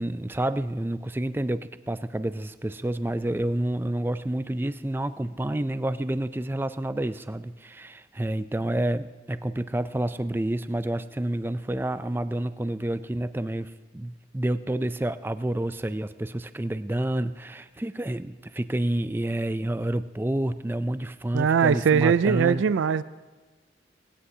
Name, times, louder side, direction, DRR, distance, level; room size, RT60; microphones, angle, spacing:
voice 1, 0.0-22.6, right 1 dB, 10° right, 13 dB, 0.3 m, -29 dB
voice 2, 21.3-23.0, right 6 dB, 85° right, 15 dB, 0.4 m, -21 dB
18.5 x 17.0 x 2.8 m, 1.3 s
head